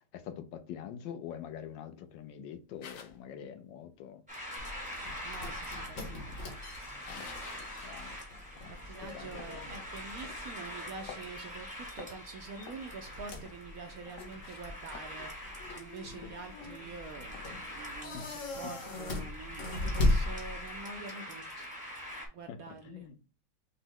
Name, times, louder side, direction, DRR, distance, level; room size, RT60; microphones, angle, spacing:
voice 1, 0.1-4.2 7.1-7.3 7.8-8.2 8.6-8.7 9.0-9.8 16.2-16.3 18.1-18.7 22.5-22.6 22.8-23.2, left 8 dB, 85° left, 1.4 m, -45 dB
sound 1, 2.8-3.3 5.7-7.9 8.4-8.5 9.1-9.6 10.2-10.4 10.8-11.6 11.9-12.3 12.6-13.7 14.1-15.3 15.7-15.8 16.2-16.3 16.5-16.9 17.3-17.5, left 7 dB, 65° left, 0.8 m, -51 dB
sound 2, 4.3-22.3, equal, 5° right, 1.0 m, -44 dB
sound 3, 4.6-20.9, left 2 dB, 50° left, 1.3 m, -38 dB
voice 2, 5.2-6.5 6.8-7.2 8.8-15.3 15.8-21.7 22.3-23.1, right 4 dB, 70° right, 0.8 m, -46 dB
6.0 x 2.1 x 3.7 m
omnidirectional pair, 2.0 m